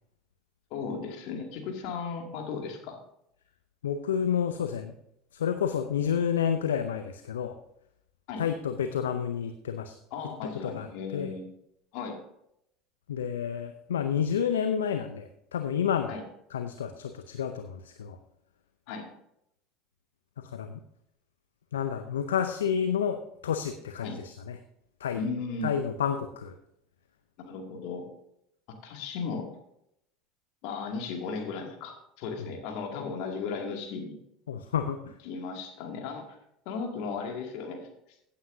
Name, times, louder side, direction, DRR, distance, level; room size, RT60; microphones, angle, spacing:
voice 1, 0.7-3.0 8.3-8.4 10.1-11.5 11.9-12.2 16.1-16.2 18.9-19.1 24.0-24.2 25.2-25.7 27.4-28.1 28.8-29.5 30.6-34.2 35.2-36.4 36.7-37.9, left 5 dB, 60° left, 2 dB, 2.4 m, -36 dB
voice 2, 3.8-4.9 5.3-7.5 8.4-10.0 10.6-10.9 11.1-11.3 13.1-16.1 16.5-18.2 20.4-20.8 21.7-24.6 25.0-25.2 25.6-26.6 32.4-32.5 34.5-35.0, left 8 dB, 80° left, 8 dB, 0.6 m, -30 dB
16.0 x 8.6 x 2.7 m, 0.77 s
hypercardioid pair, 70°, 0 cm